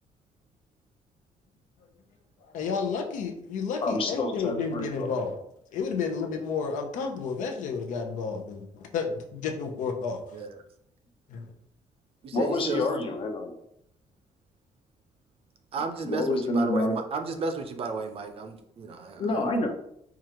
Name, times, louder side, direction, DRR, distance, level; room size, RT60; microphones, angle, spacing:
voice 1, 2.5-5.4 5.7-10.2 11.3-11.5, left 5 dB, 85° left, 3 dB, 0.7 m, -31 dB
voice 2, 3.8-5.1 12.3-13.5 16.0-16.9 19.2-19.7, left 2 dB, 45° left, 4 dB, 0.7 m, -27 dB
voice 3, 12.2-12.8 15.7-19.6, right 4 dB, 50° right, 6 dB, 0.5 m, -33 dB
4.7 x 2.4 x 2.9 m, 0.75 s
cardioid pair, 140°, 13 cm